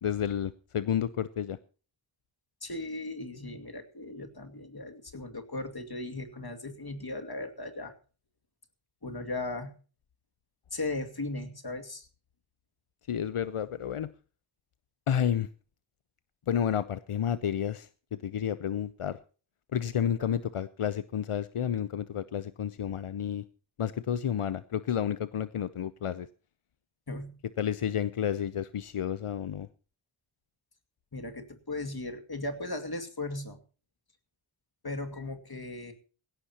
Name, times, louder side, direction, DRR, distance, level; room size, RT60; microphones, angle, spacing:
voice 1, 0.0-1.6 13.1-14.1 15.1-15.5 16.5-19.2 19.7-23.4 23.8-26.3 27.6-29.7, left 9 dB, 85° left, 0.7 m, -31 dB
voice 2, 2.6-7.9 9.0-9.7 10.7-12.1 27.1-27.3 31.1-33.6 34.8-35.9, left 2 dB, 45° left, 2.4 m, -37 dB
18.5 x 16.5 x 2.9 m
wide cardioid pair, 60°, 50 cm